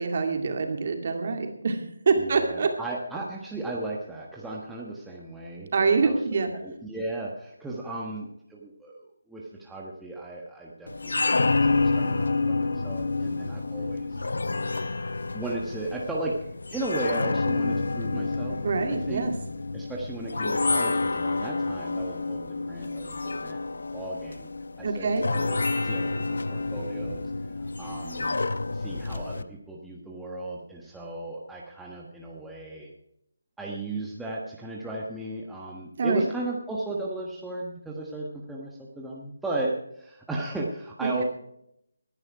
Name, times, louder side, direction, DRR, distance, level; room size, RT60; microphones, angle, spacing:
voice 1, 0.0-2.7 5.7-6.5 18.6-19.3 24.8-25.3 36.0-36.3 41.0-41.2, right 4 dB, 40° right, 5 dB, 2.2 m, -25 dB
voice 2, 2.2-14.2 15.3-18.6 18.9-19.3 19.7-23.6 23.9-24.5 24.8-27.3 27.6-32.9 33.6-41.2, right 2 dB, 5° right, -4 dB, 1.3 m, -35 dB
sound 1, 10.9-29.4, left 3 dB, 70° left, 0.8 m, -29 dB
19.0 x 10.5 x 4.7 m, 0.77 s
figure-of-eight pair, 165°, 0 cm